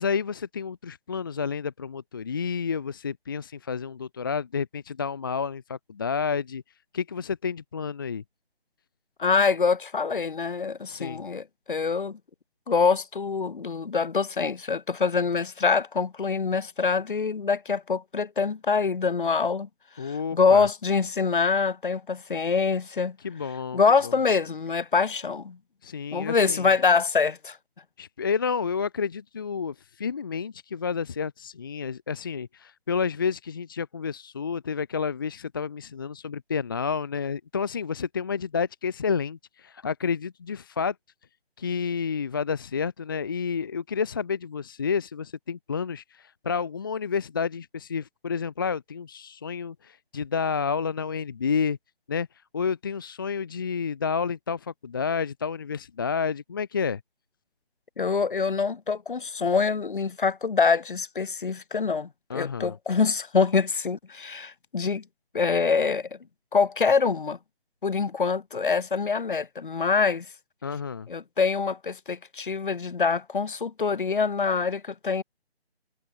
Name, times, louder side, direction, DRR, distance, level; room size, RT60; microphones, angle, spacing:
voice 1, 0.0-6.6 6.9-8.2 10.9-11.2 20.0-20.7 23.2-24.1 25.8-26.7 28.0-40.9 41.6-51.8 52.1-52.3 52.5-57.0 62.3-62.8 70.6-71.1, left 6 dB, 20° left, 0.9 m, -30 dB
voice 2, 9.2-12.2 12.7-19.7 20.0-23.2 23.7-25.6 26.1-27.6 58.0-65.0 65.3-66.2 66.5-67.4 67.8-70.3 71.1-75.2, left 5 dB, 50° left, 3.7 m, -25 dB
figure-of-eight pair, 160°, 33 cm